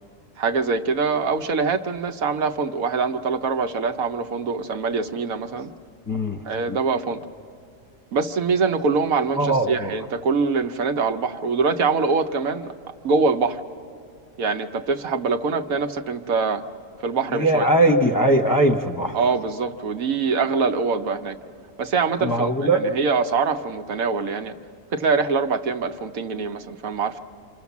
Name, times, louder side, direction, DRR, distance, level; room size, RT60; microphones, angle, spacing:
voice 1, 0.4-5.7 6.5-7.2 8.1-12.7 13.0-13.6 14.4-16.6 17.0-17.6 19.1-21.4 21.8-22.5 22.7-24.5 24.9-27.2, right 4 dB, 65° right, 7 dB, 1.2 m, -24 dB
voice 2, 6.1-6.8 9.3-10.1 17.3-19.2 22.2-22.9, right 1 dB, 15° left, 4 dB, 0.9 m, -20 dB
29.5 x 26.0 x 7.2 m, 2.4 s
omnidirectional pair, 1.6 m